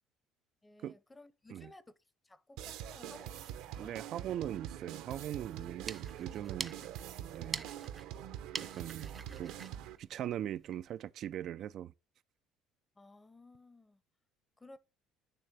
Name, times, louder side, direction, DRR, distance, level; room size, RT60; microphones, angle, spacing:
voice 1, 0.6-1.8 2.2-4.0 13.0-14.0 14.6-14.8, left 2 dB, 15° left, 0.7 m, -57 dB
sound 1, 2.6-10.0, right 11 dB, 80° right, 0.8 m, -45 dB
voice 2, 3.8-6.8 7.3-7.7 8.6-9.1 9.4-9.5 10.0-11.9, right 11 dB, 60° right, 0.3 m, -40 dB
sound 2, 5.6-10.9, right 4 dB, 25° right, 0.6 m, -46 dB
9.0 x 3.3 x 4.7 m
supercardioid pair, 85°, 0 cm